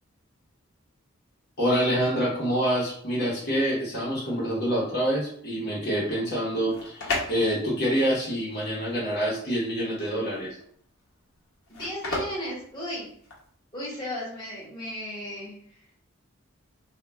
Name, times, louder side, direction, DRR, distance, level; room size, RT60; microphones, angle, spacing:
voice 1, 1.6-10.6, equal, 50° left, -6 dB, 0.8 m, -26 dB
sound 1, 6.6-13.5, left 2 dB, 80° left, 0.8 m, -36 dB
voice 2, 11.7-13.1 13.7-15.8, equal, 20° left, -6 dB, 1.0 m, -35 dB
2.2 x 2.1 x 3.3 m, 0.63 s
head